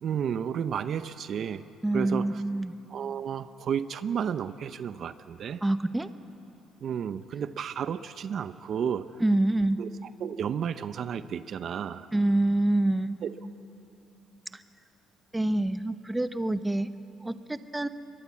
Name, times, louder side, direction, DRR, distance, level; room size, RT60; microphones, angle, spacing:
voice 1, 0.0-1.6 1.9-2.4 2.9-5.6 6.8-9.1 9.8-12.1 13.2-13.3, right 8 dB, 55° right, 12 dB, 0.7 m, -32 dB
voice 2, 1.8-2.7 5.6-6.1 9.2-9.8 12.1-13.1 15.3-16.9 17.2-17.9, right 1 dB, 10° right, 11 dB, 0.9 m, -26 dB
23.0 x 21.5 x 8.5 m, 2.8 s
cardioid pair, 105°, 0 cm